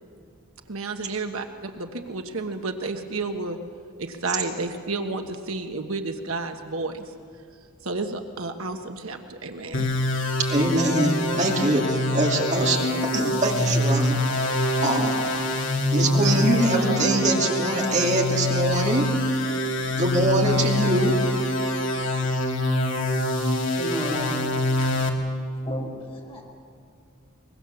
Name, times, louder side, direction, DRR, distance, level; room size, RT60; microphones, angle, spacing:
voice 1, 0.7-3.6 4.0-7.0 7.8-9.9, right 3 dB, 70° right, 6 dB, 1.3 m, -31 dB
sound 1, 9.7-25.1, left 1 dB, 60° left, 2.5 m, -25 dB
voice 2, 10.5-12.8 13.1-14.5 14.8-15.2 15.9-19.1 20.0-21.1, right 1 dB, 35° right, 0 dB, 2.5 m, -23 dB
voice 3, 23.7-24.4 25.6-26.4, equal, 25° left, 0 dB, 4.8 m, -33 dB
23.5 x 21.5 x 7.0 m, 2.3 s
head